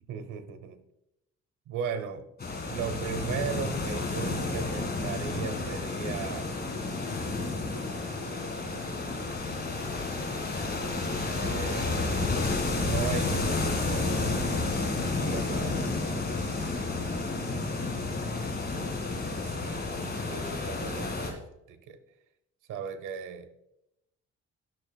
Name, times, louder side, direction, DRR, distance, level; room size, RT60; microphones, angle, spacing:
voice 1, 0.1-0.8 1.7-2.3 2.7-6.5 8.1-9.4 11.3-12.5 12.8-14.4 15.2-15.9 19.4-21.4 21.7-22.0 22.7-23.5, right 7 dB, 80° right, 10 dB, 0.9 m, -37 dB
sound 1, 2.4-21.3, left 3 dB, 30° left, 1.9 m, -31 dB
12.5 x 6.2 x 2.3 m, 0.85 s
cardioid pair, 90°, 30 cm